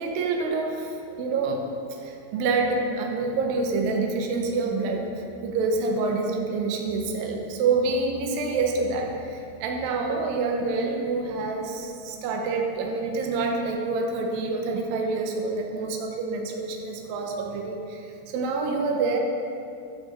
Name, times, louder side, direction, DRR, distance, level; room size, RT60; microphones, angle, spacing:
voice 1, 0.0-1.7 2.0-19.2, right 3 dB, 90° right, 1 dB, 2.0 m, -27 dB
12.0 x 8.5 x 3.1 m, 2.5 s
omnidirectional pair, 5.2 m